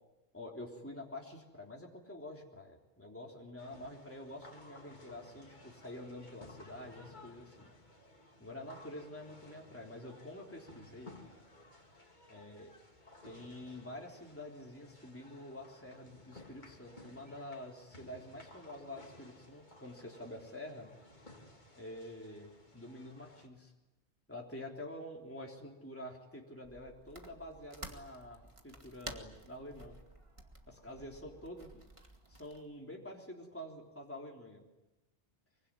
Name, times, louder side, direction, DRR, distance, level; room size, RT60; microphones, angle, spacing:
voice 1, 0.3-7.7 8.4-11.2 12.3-12.7 13.2-20.9 21.8-22.5 22.7-23.7 24.3-29.9 30.7-31.7 32.3-34.6, left 1 dB, 10° left, -1 dB, 3.6 m, -47 dB
sound 1, 3.6-23.5, left 1 dB, 40° left, 3.0 m, -57 dB
sound 2, 26.6-32.6, right 1 dB, 25° right, 2.4 m, -52 dB
24.5 x 24.0 x 9.8 m, 1.0 s
omnidirectional pair, 1.2 m